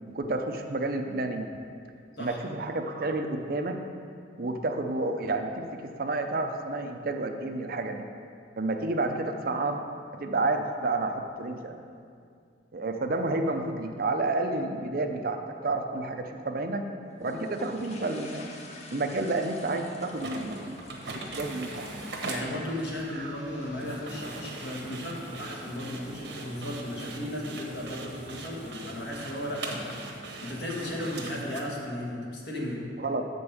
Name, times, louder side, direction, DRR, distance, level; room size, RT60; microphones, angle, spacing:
voice 1, 0.1-1.6 2.2-3.8 4.4-8.0 8.6-9.8 10.2-11.8 12.7-15.4 15.6-16.8 17.2-18.5 18.9-21.9 23.2-23.3 33.0-33.3, right 2 dB, 55° right, 5 dB, 0.6 m, -30 dB
sound 1, 17.1-23.7, left 2 dB, 40° left, 0.8 m, -48 dB
sound 2, 20.1-31.6, right 2 dB, 85° right, 1.1 m, -40 dB
sound 3, 21.0-26.6, equal, 10° right, 1.6 m, -50 dB
voice 2, 22.3-32.8, left 1 dB, 65° left, -3 dB, 1.6 m, -35 dB
6.9 x 5.3 x 6.7 m, 2.3 s
head